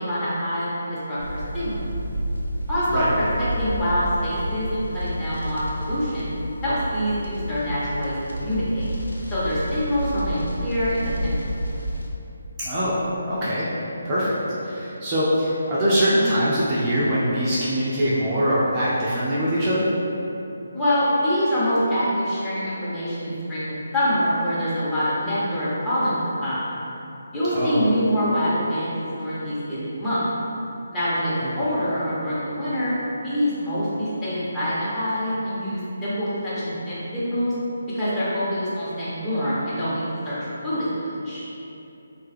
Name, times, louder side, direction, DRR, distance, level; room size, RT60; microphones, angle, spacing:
voice 1, 0.0-1.9 2.7-6.3 6.6-8.9 9.3-11.6 20.7-26.8 27.3-30.3 30.9-33.0 33.2-37.5 37.9-40.4 40.6-41.4, equal, 15° left, -12 dB, 0.9 m, -25 dB
sound 1, 1.2-12.1, equal, 90° left, 0.4 m, -30 dB
voice 2, 12.6-13.0 13.3-13.7 14.0-14.4 14.6-19.9 27.5-27.8 31.6-31.7, equal, 25° right, -9 dB, 0.5 m, -22 dB
3.2 x 2.2 x 3.3 m, 2.9 s
figure-of-eight pair, 150°, 0 cm